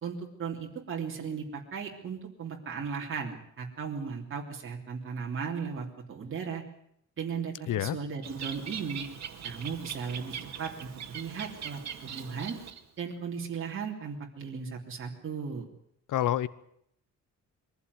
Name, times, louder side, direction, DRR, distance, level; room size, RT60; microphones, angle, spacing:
voice 1, 0.0-6.6 7.2-9.1 9.4-12.6 13.0-15.7, right 6 dB, 40° right, 0 dB, 3.4 m, -36 dB
voice 2, 7.7-8.0 16.1-16.5, left 12 dB, 85° left, 17 dB, 0.9 m, -27 dB
Bird, 8.2-13.0, right 8 dB, 60° right, 2.3 m, -41 dB
23.0 x 15.5 x 9.7 m, 0.73 s
wide cardioid pair, 175°, 31 cm